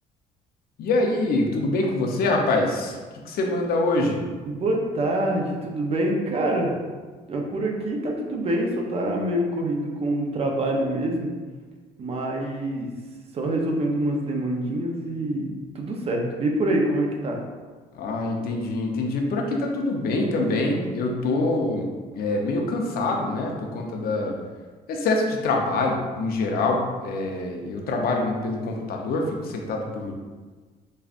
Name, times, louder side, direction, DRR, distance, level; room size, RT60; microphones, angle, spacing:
voice 1, 0.8-3.0 3.2-4.2 17.9-21.8 22.1-24.4 24.9-30.1, left 2 dB, 65° left, 1 dB, 0.7 m, -25 dB
voice 2, 4.4-6.8 7.3-11.3 12.0-12.9 13.3-17.4, right 1 dB, 35° right, 1 dB, 0.7 m, -25 dB
5.4 x 2.3 x 2.5 m, 1.4 s
cardioid pair, 110°, 17 cm